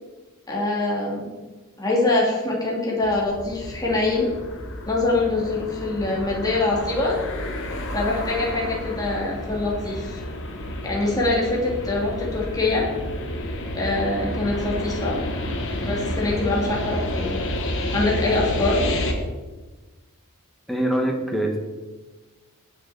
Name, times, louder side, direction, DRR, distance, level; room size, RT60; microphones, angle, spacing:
voice 1, 0.5-1.2 1.8-4.3 4.9-7.2 7.9-10.2 10.8-12.8 13.7-15.2 15.8-17.4 17.9-18.9, left 2 dB, 15° left, -4 dB, 2.5 m, -24 dB
sound 1, 3.0-19.1, left 1 dB, 60° left, 1.5 m, -30 dB
voice 2, 20.7-21.6, right 1 dB, ahead, 1 dB, 1.6 m, -23 dB
17.5 x 6.7 x 4.2 m, 1.3 s
head